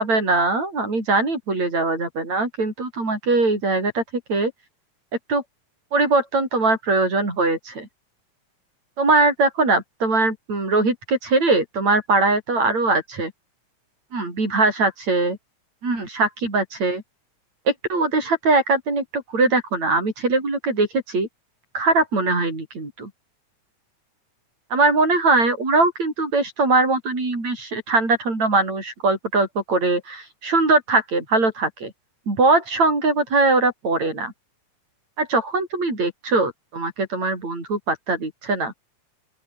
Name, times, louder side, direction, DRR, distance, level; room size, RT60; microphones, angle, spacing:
voice 1, 0.0-4.0 4.3-4.5 5.3-5.4 5.9-7.9 9.0-13.3 14.1-15.4 15.8-17.0 17.7-21.3 21.7-23.1 24.7-31.9 32.3-34.3 35.2-38.7, right 3 dB, 60° right, 9.3 m, -21 dB
open air
omnidirectional pair, 3.6 m